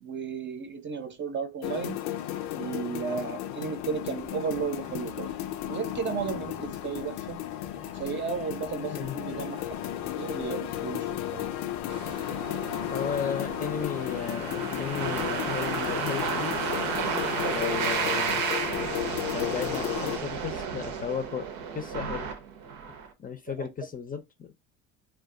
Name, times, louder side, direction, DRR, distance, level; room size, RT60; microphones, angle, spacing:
voice 1, 0.0-2.0 2.6-5.3 5.7-7.4 7.9-9.7 10.1-11.5 23.6-23.7, right 6 dB, 35° right, 0.7 m, -34 dB
sound 1, 1.6-20.2, left 12 dB, 80° left, 0.5 m, -34 dB
sound 2, 3.9-20.7, equal, ahead, 0.8 m, -50 dB
sound 3, 11.9-23.1, right 6 dB, 80° right, 0.8 m, -32 dB
voice 2, 12.9-16.6 17.5-18.4 19.3-21.5 21.7-22.3 23.2-24.5, left 7 dB, 25° left, 0.5 m, -34 dB
2.3 x 2.2 x 3.6 m
supercardioid pair, 85°, 33 cm